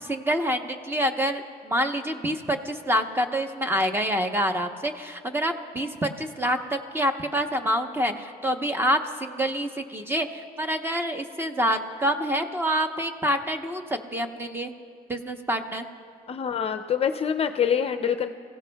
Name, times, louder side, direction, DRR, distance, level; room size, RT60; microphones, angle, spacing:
voice 1, 0.0-14.7 15.1-15.9, equal, 15° right, 6 dB, 0.9 m, -27 dB
voice 2, 16.3-18.3, left 8 dB, 35° left, 8 dB, 0.5 m, -25 dB
28.0 x 16.0 x 2.3 m, 2.2 s
cardioid pair, 110°, 17 cm